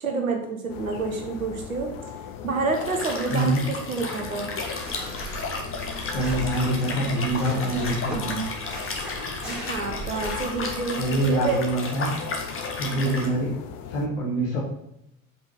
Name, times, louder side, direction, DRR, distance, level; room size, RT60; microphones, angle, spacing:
voice 1, 0.0-2.1 2.4-4.5 9.4-11.6, right 4 dB, 80° right, 3 dB, 1.2 m, -28 dB
sound 1, 0.7-14.1, left 7 dB, 50° left, 0.8 m, -39 dB
Liquid, 2.7-13.3, left 3 dB, 30° left, 1.6 m, -34 dB
voice 2, 3.3-3.6 6.0-8.5 11.0-12.1 12.7-13.5 13.9-14.6, right 1 dB, 70° left, -4 dB, 1.7 m, -25 dB
sound 2, 4.8-11.4, right 1 dB, ahead, 2.8 m, -38 dB
5.5 x 5.4 x 5.5 m, 0.80 s
figure-of-eight pair, 60°, 41 cm